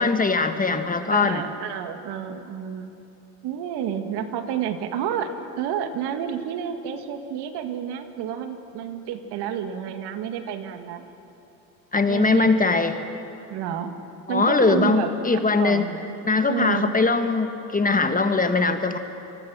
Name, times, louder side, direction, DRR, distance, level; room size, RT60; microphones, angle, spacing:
voice 1, 0.0-1.4 11.9-13.0 14.3-15.9 16.2-19.0, left 3 dB, 20° left, 7 dB, 1.6 m, -21 dB
voice 2, 1.1-2.9 3.4-11.0 12.1-12.8 13.5-13.9 14.3-16.2 16.5-17.0, right 8 dB, 65° right, 7 dB, 2.0 m, -30 dB
26.5 x 21.0 x 6.3 m, 2.8 s
hypercardioid pair, 75°, 43 cm